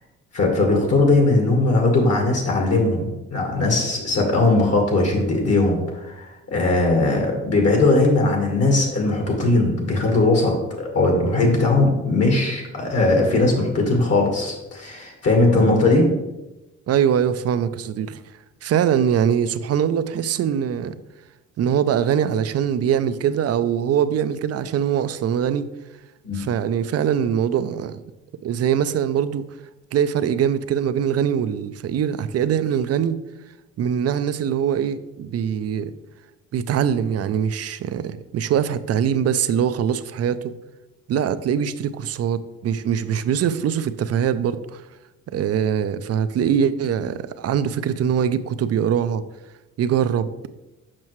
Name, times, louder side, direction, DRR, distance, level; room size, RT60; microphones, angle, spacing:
voice 1, 0.3-16.1 26.2-26.4, left 2 dB, 55° left, 1.5 m, -19 dB
voice 2, 16.9-18.2 18.6-21.0 21.6-25.7 26.3-28.0 28.4-29.5 29.9-33.2 33.8-35.9 36.5-40.5 41.1-44.8 45.3-49.2 49.8-50.3, right 8 dB, 55° right, 0.5 m, -22 dB
7.4 x 5.5 x 3.1 m
cardioid pair, 90°, 30 cm